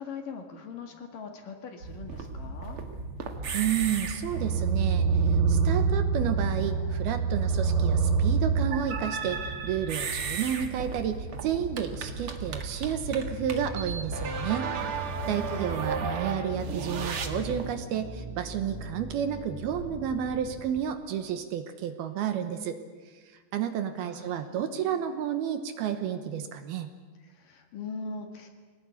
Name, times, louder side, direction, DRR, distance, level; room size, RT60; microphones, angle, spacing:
voice 1, 0.0-2.8 15.2-16.0 23.9-25.0 27.2-28.5, left 4 dB, 55° left, 4 dB, 3.1 m, -41 dB
sound 1, 1.8-17.7, right 5 dB, 55° right, 1.6 m, -29 dB
voice 2, 3.5-5.1 5.5-14.7 15.3-22.8 23.5-26.9, right 9 dB, 70° right, 8 dB, 2.8 m, -31 dB
sound 2, 12.0-20.8, equal, 10° right, 3.0 m, -41 dB
24.0 x 18.5 x 9.7 m, 1.4 s
omnidirectional pair, 5.0 m